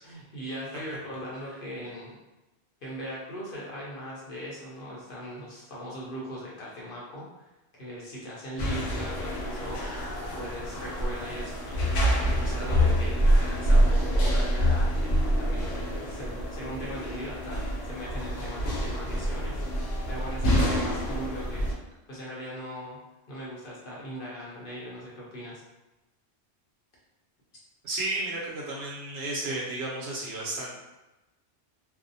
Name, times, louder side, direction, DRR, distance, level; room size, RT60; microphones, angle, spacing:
voice 1, 0.0-2.2 2.8-21.7 22.1-23.0 23.3-25.6, equal, 55° left, -5 dB, 0.8 m, -39 dB
sound 1, 8.6-21.7, equal, 85° left, 0.9 m, -26 dB
voice 2, 27.8-30.7, right 2 dB, 70° right, -4 dB, 0.9 m, -32 dB
2.6 x 2.0 x 2.6 m, 1.0 s
omnidirectional pair, 1.1 m